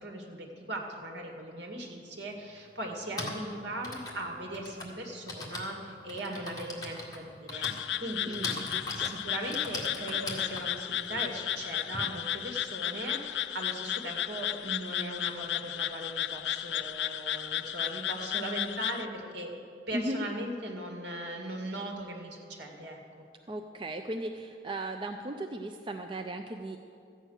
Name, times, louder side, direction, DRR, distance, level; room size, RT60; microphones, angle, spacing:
voice 1, 0.0-8.3 8.9-19.5 19.9-23.0, right 1 dB, 75° right, 2 dB, 2.1 m, -39 dB
Typing, 1.8-1.9 2.9-12.0, left 2 dB, 20° left, 1.7 m, -41 dB
sound 1, 7.5-19.1, left 12 dB, 80° left, 0.4 m, -34 dB
voice 2, 8.3-9.1 19.9-20.3 23.5-26.8, right 1 dB, 30° right, 4 dB, 0.5 m, -37 dB
14.0 x 8.9 x 6.5 m, 2.5 s
head